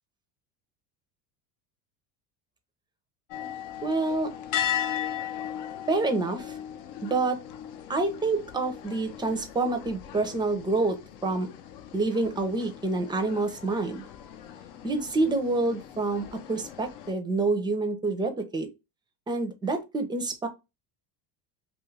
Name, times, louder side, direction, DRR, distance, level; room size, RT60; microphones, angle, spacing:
sound 1, 3.3-17.1, left 10 dB, 80° left, 0.6 m, -37 dB
voice 1, 3.8-4.3 5.9-6.5 7.0-7.4 7.9-11.5 11.9-14.0 14.8-18.7 19.3-20.5, right 3 dB, 10° right, 0.4 m, -27 dB
2.7 x 2.4 x 3.1 m
supercardioid pair, 115°, 44 cm